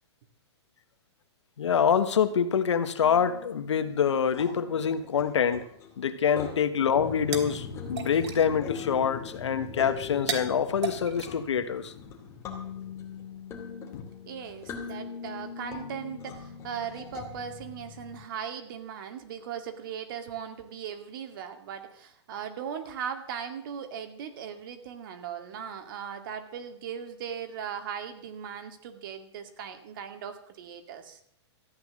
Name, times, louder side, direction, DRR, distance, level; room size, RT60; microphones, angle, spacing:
voice 1, 1.6-5.6 6.0-11.9, left 7 dB, 85° left, 11 dB, 1.5 m, -26 dB
sound 1, 3.0-18.2, left 6 dB, 20° left, 2.6 m, -43 dB
sound 2, 6.8-12.2, right 6 dB, 75° right, 3.1 m, -39 dB
sound 3, 6.9-13.4 13.9-14.0, left 5 dB, 40° left, 2.5 m, -42 dB
voice 2, 14.3-31.2, right 8 dB, 50° right, 7 dB, 2.3 m, -38 dB
14.5 x 9.4 x 7.5 m, 0.68 s
hypercardioid pair, 155°, 15 cm